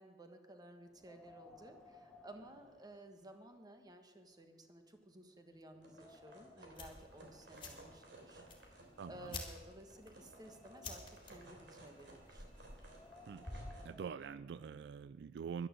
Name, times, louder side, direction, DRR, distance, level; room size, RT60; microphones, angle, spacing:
voice 1, 0.0-12.4, right 1 dB, 25° right, 6 dB, 1.3 m, -56 dB
Wind, 0.9-3.5 3.9-4.0 4.6-4.7 5.2-6.8 7.7-9.2 9.8-11.4 12.7-14.8, left 2 dB, 5° left, 1.3 m, -61 dB
sound 1, 5.8-13.8, right 2 dB, 85° right, 3.3 m, -59 dB
sound 2, 6.7-13.9, left 3 dB, 30° left, 2.5 m, -52 dB
voice 2, 9.0-9.3 13.3-13.5 13.8-15.7, right 6 dB, 70° right, 16 dB, 0.3 m, -45 dB
11.0 x 11.0 x 7.5 m, 1.4 s
head